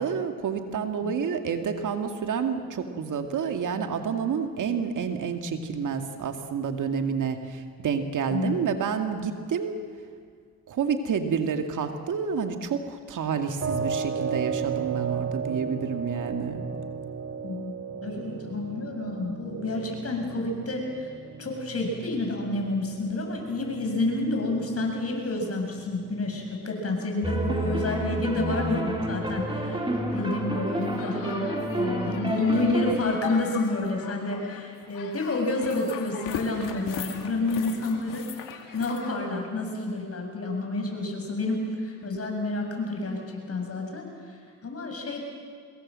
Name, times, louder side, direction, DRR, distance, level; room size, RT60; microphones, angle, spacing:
voice 1, 0.0-9.8 10.7-16.7, right 6 dB, 70° right, 5 dB, 2.3 m, -29 dB
sound 1, 13.6-26.6, right 5 dB, 50° right, 2.0 m, -35 dB
voice 2, 17.4-21.1 21.4-29.8 30.1-38.2 38.7-45.3, left 2 dB, 45° left, 2 dB, 7.2 m, -29 dB
sound 2, 27.2-32.9, right 1 dB, 15° right, 4.4 m, -29 dB
sound 3, 29.7-39.1, left 7 dB, 85° left, 2.4 m, -40 dB
25.5 x 21.5 x 7.7 m, 2.1 s
supercardioid pair, 65°, 32 cm